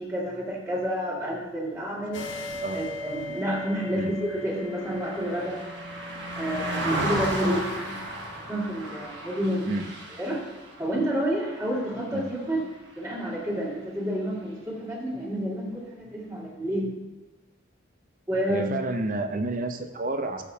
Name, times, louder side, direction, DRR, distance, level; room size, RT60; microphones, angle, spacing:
voice 1, 0.0-2.2 2.7-5.6 6.4-8.0 8.5-9.7 10.1-10.4 10.8-12.6 13.0-16.9 18.3-18.7, equal, 15° right, -6 dB, 2.2 m, -29 dB
sound 1, 2.1-9.3, left 1 dB, 75° left, 1.0 m, -40 dB
Car passing by, 3.3-12.9 13.3-13.5, right 1 dB, 65° right, 1.4 m, -35 dB
voice 2, 18.5-20.4, right 2 dB, 45° right, 7 dB, 0.7 m, -30 dB
13.5 x 6.5 x 2.8 m, 1.1 s
head